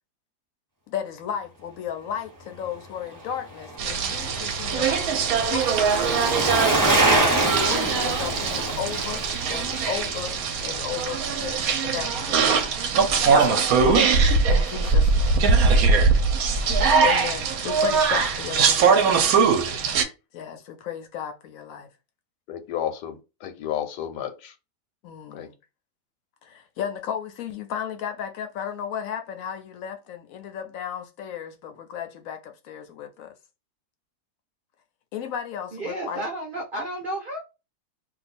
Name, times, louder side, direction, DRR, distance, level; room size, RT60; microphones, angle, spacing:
voice 1, 0.9-5.0 5.5-6.8 7.4-9.2 9.5-12.7 13.2-15.9 17.0-19.6 20.0-21.9 25.0-25.6 26.4-33.3 35.1-36.2, left 8 dB, 70° left, 0.9 m, -35 dB
Bicycle, 3.1-11.5 11.8-11.9, right 1 dB, 15° right, 1.0 m, -27 dB
sound 1, 3.8-20.0, right 5 dB, 70° right, 1.0 m, -21 dB
voice 2, 22.5-24.5 25.3-25.5, left 10 dB, 90° left, 1.2 m, -32 dB
voice 3, 35.7-37.4, right 1 dB, 55° right, 0.6 m, -32 dB
2.6 x 2.3 x 4.1 m
omnidirectional pair, 1.7 m